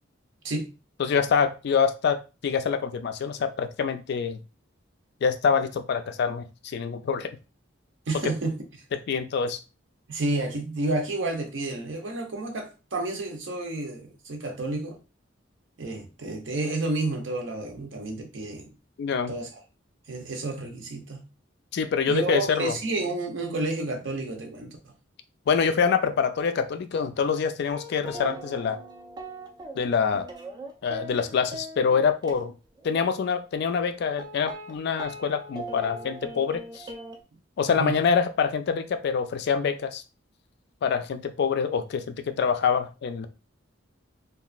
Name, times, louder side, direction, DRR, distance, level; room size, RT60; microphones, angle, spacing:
voice 1, 1.0-4.4 5.2-7.4 8.2-8.3 8.9-9.6 19.0-19.3 21.7-22.7 25.5-28.8 29.8-30.3 30.8-32.5 32.8-36.9 37.6-40.0 40.8-43.3, left 6 dB, 55° left, 0.3 m, -25 dB
voice 2, 8.1-8.6 10.1-15.0 15.8-18.7 19.3-19.6 20.1-21.2 22.1-24.9 37.7-37.9, right 2 dB, 65° right, 0.7 m, -30 dB
sound 1, 27.7-32.4 32.8-33.2 33.7-33.8 34.2-37.2, right 1 dB, 20° right, 0.4 m, -40 dB
2.9 x 2.4 x 2.4 m
head